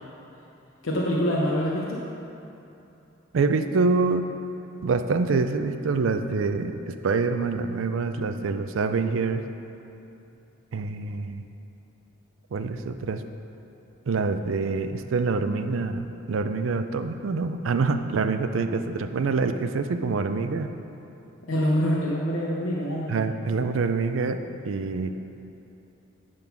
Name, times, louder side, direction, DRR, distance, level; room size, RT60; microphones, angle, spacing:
voice 1, 0.8-2.0 21.5-23.2, equal, 85° left, -3 dB, 0.9 m, -25 dB
voice 2, 3.3-4.3 4.8-9.4 10.7-11.4 12.5-13.2 14.1-20.7 23.1-25.1, right 4 dB, 75° right, 9 dB, 0.4 m, -26 dB
10.5 x 3.9 x 5.9 m, 2.8 s
head